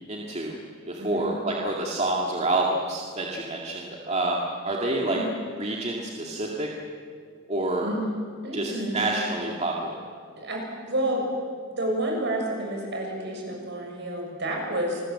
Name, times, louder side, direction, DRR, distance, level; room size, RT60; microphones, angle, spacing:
voice 1, 0.1-0.6 0.9-5.2 5.6-6.7 7.5-7.9 8.5-9.9, right 2 dB, 35° right, -1 dB, 2.3 m, -28 dB
voice 2, 1.0-1.3 5.1-5.3 7.8-8.1 8.4-9.0 10.4-11.3 11.7-15.0, right 1 dB, 60° right, 0 dB, 7.0 m, -30 dB
28.0 x 21.0 x 7.7 m, 2.1 s
head